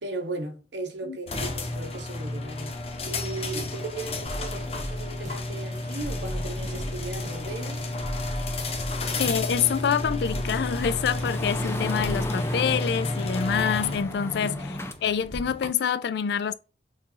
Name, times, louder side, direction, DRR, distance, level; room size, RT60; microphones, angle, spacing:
voice 1, 0.0-2.8 3.1-7.8 14.3-14.5, right 2 dB, 80° right, 1.2 m, -37 dB
sound 1, 1.3-15.7, left 2 dB, 35° left, 0.9 m, -32 dB
sound 2, 4.3-12.3, equal, 45° right, 1.2 m, -37 dB
sound 3, 6.0-14.9, left 1 dB, 15° left, 0.5 m, -37 dB
voice 2, 9.2-16.5, left 7 dB, 65° left, 0.4 m, -26 dB
6.6 x 2.6 x 2.8 m
head